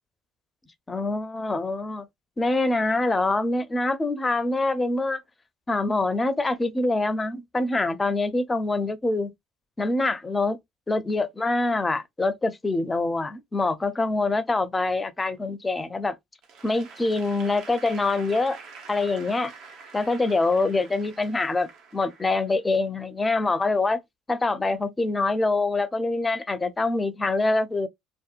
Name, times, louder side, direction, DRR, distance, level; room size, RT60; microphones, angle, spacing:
voice 1, 0.9-2.1 2.4-5.2 5.7-9.3 9.8-10.6 10.9-16.1 16.6-18.6 18.9-19.5 19.9-24.0 24.3-27.9, left 2 dB, 20° left, 0.4 m, -25 dB
Applause / Crowd, 16.4-22.7, right 5 dB, 65° right, 0.7 m, -46 dB
2.7 x 2.2 x 2.3 m
supercardioid pair, 75°, 0 cm